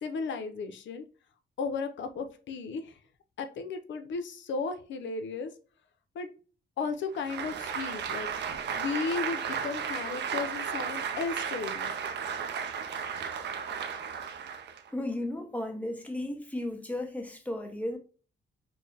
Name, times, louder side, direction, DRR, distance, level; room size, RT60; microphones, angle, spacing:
voice 1, 0.0-1.0 1.6-3.0 3.4-5.5 6.1-6.3 6.8-8.3 8.7-11.9, left 4 dB, 75° left, 0.6 m, -34 dB
Applause, 7.1-14.9, right 7 dB, 65° right, 0.5 m, -34 dB
voice 2, 14.9-18.0, left 1 dB, 5° left, 0.7 m, -34 dB
4.3 x 2.1 x 3.2 m
cardioid pair, 120°, 19 cm